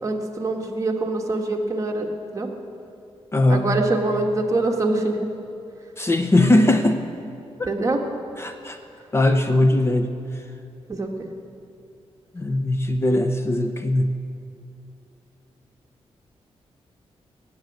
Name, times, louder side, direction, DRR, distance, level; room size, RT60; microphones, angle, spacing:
voice 1, 0.0-2.1 2.3-2.5 3.5-5.3 7.6-8.0 10.9-11.3, right 2 dB, 30° right, 1 dB, 1.5 m, -24 dB
voice 2, 3.3-3.8 6.0-7.0 7.6-7.7 8.4-8.8 9.1-10.1 12.3-14.2, left 1 dB, 25° left, 7 dB, 0.6 m, -20 dB
17.0 x 7.2 x 9.2 m, 2.6 s
wide cardioid pair, 135°, 11 cm